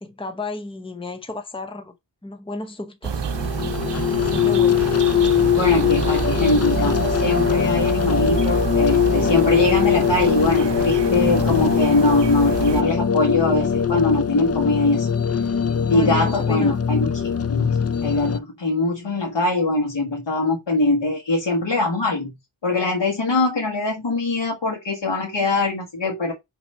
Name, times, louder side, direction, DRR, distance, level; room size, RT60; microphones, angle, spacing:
voice 1, 0.0-1.9 2.2-3.3 4.1-4.9 15.9-16.8, left 2 dB, 10° left, 0.9 m, -33 dB
sound 1, 3.0-12.8, right 7 dB, 75° right, 0.7 m, -27 dB
sound 2, 3.1-18.4, left 7 dB, 35° left, 0.5 m, -21 dB
voice 2, 5.5-15.1 15.9-22.3 22.6-26.3, left 2 dB, 90° left, 1.6 m, -22 dB
5.8 x 3.0 x 5.4 m
wide cardioid pair, 60°, 43 cm